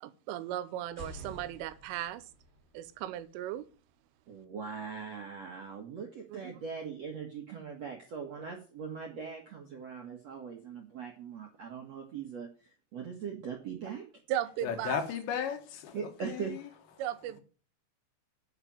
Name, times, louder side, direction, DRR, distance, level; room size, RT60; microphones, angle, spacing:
voice 1, 0.0-2.3 2.8-3.7 6.3-6.5 14.3-15.0 17.0-17.4, right 12 dB, 90° right, 3.4 m, -36 dB
sound 1, 0.8-4.6, right 1 dB, 20° left, 4.4 m, -52 dB
voice 2, 4.3-12.5 12.9-14.0 15.9-16.5, right 6 dB, 65° right, 1.6 m, -40 dB
voice 3, 14.6-16.7, left 7 dB, 70° left, 3.4 m, -35 dB
10.0 x 5.9 x 8.6 m
omnidirectional pair, 5.6 m